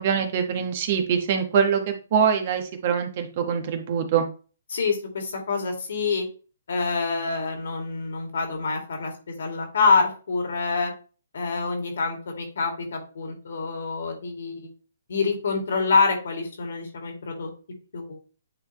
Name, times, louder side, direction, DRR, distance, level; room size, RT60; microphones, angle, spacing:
voice 1, 0.0-4.3, right 7 dB, 45° right, 5 dB, 1.3 m, -24 dB
voice 2, 4.7-6.3 6.7-10.9 11.3-14.7 15.1-17.5 17.9-18.2, left 4 dB, 70° left, 2 dB, 2.4 m, -26 dB
8.9 x 3.7 x 3.1 m, 0.36 s
hypercardioid pair, 140°, 0 cm